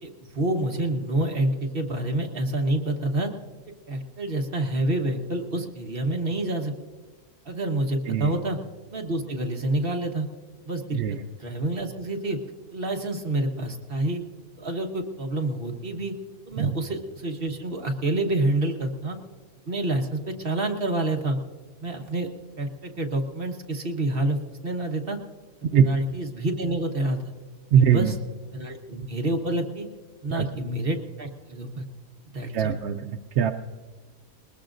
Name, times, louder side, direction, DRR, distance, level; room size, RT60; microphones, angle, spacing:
voice 1, 0.0-3.3 3.9-6.7 7.4-8.6 8.9-10.3 10.6-10.8 11.1-12.4 12.7-14.2 14.6-16.1 16.5-19.2 19.7-21.4 21.8-22.3 22.6-25.2 25.8-27.2 27.7-28.2 28.5-29.9 30.2-31.8 32.3-32.7, right 1 dB, 40° right, 2 dB, 1.4 m, -28 dB
voice 2, 27.7-28.2 30.3-30.4 32.5-33.5, right 7 dB, 65° right, 5 dB, 0.8 m, -21 dB
20.5 x 20.0 x 2.6 m, 1.4 s
omnidirectional pair, 1.5 m